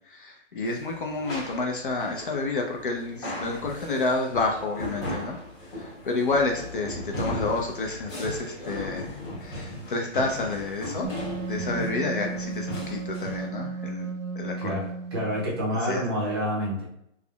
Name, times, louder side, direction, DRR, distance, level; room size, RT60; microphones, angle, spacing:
voice 1, 0.1-5.4 5.8-9.1 9.4-11.1 11.5-14.1 14.4-14.8 15.9-16.0, left 3 dB, 45° left, 1 dB, 0.4 m, -29 dB
sound 1, 0.6-13.5, left 1 dB, 25° left, 1.1 m, -37 dB
Wind instrument woodwind instrument, 11.0-15.5, right 4 dB, 75° right, 0.6 m, -34 dB
voice 2, 11.5-11.9 14.6-16.9, equal, 20° right, -5 dB, 0.5 m, -29 dB
3.5 x 2.0 x 2.2 m, 0.78 s
hypercardioid pair, 150°, 38 cm